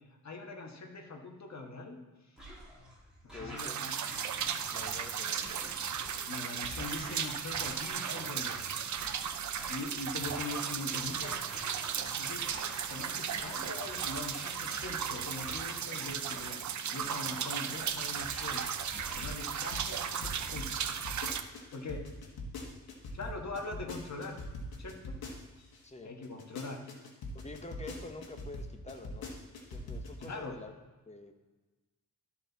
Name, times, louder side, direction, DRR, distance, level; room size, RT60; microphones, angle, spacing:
voice 1, 0.2-2.0 2.2-2.4 3.2-3.9 6.3-8.6 9.7-11.4 12.2-12.5 12.9-16.6 16.8-18.7 19.1-20.9 21.7-22.0 23.1-24.4 24.8-25.2 26.0-26.8 30.2-30.6, left 3 dB, 50° left, 3 dB, 1.5 m, -42 dB
sound 1, 2.4-20.7, equal, ahead, 3.0 m, -48 dB
voice 2, 3.3-3.8 4.7-5.6 25.8-26.1 27.3-29.3 29.7-30.8 31.1-31.5, left 2 dB, 20° left, 6 dB, 0.9 m, -47 dB
sound 2, 3.6-21.4, right 8 dB, 55° right, 0.6 m, -36 dB
sound 3, 19.1-25.8 26.2-30.3, left 2 dB, 85° left, 1.4 m, -42 dB
12.5 x 4.4 x 4.1 m, 1.2 s
cardioid pair, 80°, 36 cm